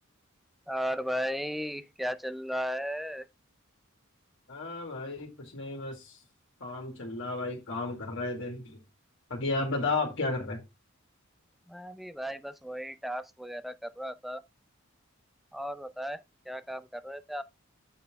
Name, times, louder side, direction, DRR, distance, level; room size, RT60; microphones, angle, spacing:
voice 1, 0.7-3.3 11.7-14.4 15.5-17.4, equal, ahead, 0.5 m, -35 dB
voice 2, 4.5-6.2 6.6-8.8 9.3-10.6, left 3 dB, 60° left, 2.0 m, -33 dB
8.1 x 5.6 x 3.5 m
head